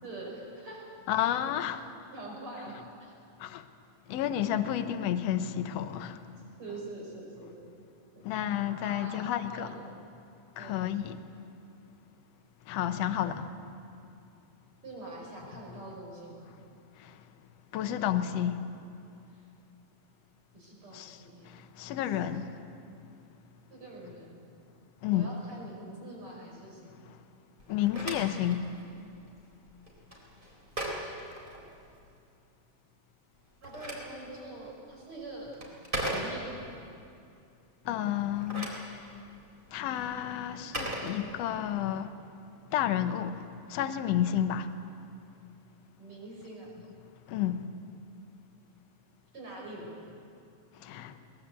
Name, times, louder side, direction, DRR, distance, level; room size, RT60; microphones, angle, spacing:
voice 1, 0.0-0.9 1.3-1.5 2.1-3.1 6.6-7.5 8.8-9.8 10.6-10.8 14.8-16.5 19.3-19.4 20.5-21.5 23.7-24.4 25.1-27.0 33.6-35.5 36.0-36.6 46.0-46.7 49.3-50.1, right 2 dB, 45° right, 6.4 m, -44 dB
voice 2, 1.1-1.9 3.4-3.6 4.1-6.2 8.2-9.7 10.6-11.2 12.7-13.5 17.0-17.1 17.7-18.6 20.9-21.2 21.8-22.5 25.0-25.3 27.7-28.7 37.9-38.7 39.7-42.1 42.7-44.7 47.3-47.7 50.8-51.1, left 10 dB, 70° left, 1.9 m, -31 dB
Telephone, 27.6-32.1 33.3-36.8 38.2-41.8, right 1 dB, 15° right, 3.9 m, -39 dB
22.0 x 19.5 x 8.3 m
omnidirectional pair, 3.3 m